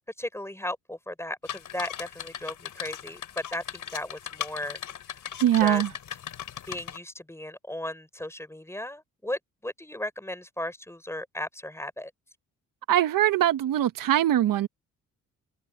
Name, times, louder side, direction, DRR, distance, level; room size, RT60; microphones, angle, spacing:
voice 1, 0.2-3.2 3.5-4.8 5.6-5.8 6.7-12.1, left 1 dB, 5° left, 7.4 m, -36 dB
sound 1, 1.5-7.0, left 9 dB, 65° left, 4.4 m, -38 dB
voice 2, 5.4-5.9 12.9-14.7, right 12 dB, 70° right, 1.5 m, -22 dB
open air
supercardioid pair, 60°, 34 cm